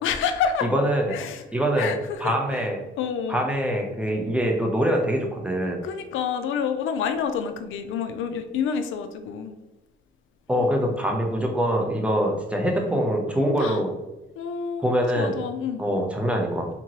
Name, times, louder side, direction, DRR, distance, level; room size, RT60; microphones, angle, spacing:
voice 1, 0.0-0.7 1.1-1.4 1.8-2.7 3.0-3.4 5.8-9.5 10.6-10.7 13.6-13.8 14.4-15.8, left 7 dB, 80° left, 8 dB, 0.4 m, -28 dB
voice 2, 0.7-1.1 1.5-1.9 2.2-2.8 3.3-5.8 10.5-13.9 14.8-15.3 15.8-16.7, equal, 5° right, 0 dB, 0.7 m, -24 dB
3.6 x 2.9 x 3.0 m, 1.0 s
cardioid pair, 90°, 20 cm